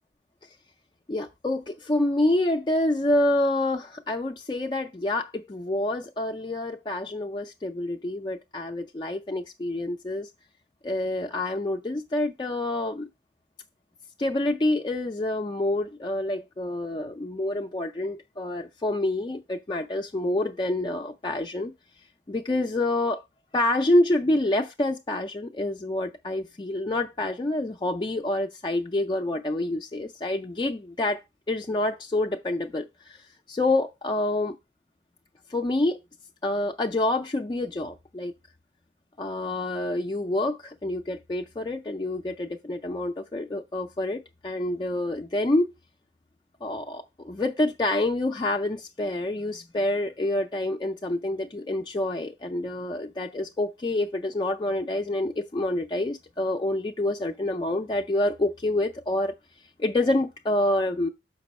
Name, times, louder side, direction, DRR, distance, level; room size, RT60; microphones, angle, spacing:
voice 1, 1.1-10.3 10.8-13.1 14.2-21.7 22.3-23.2 23.5-31.2 31.5-34.5 35.5-36.0 36.4-38.3 39.2-45.7 46.6-59.3 59.8-61.1, left 1 dB, 25° left, 0.4 m, -27 dB
6.7 x 5.3 x 4.1 m
head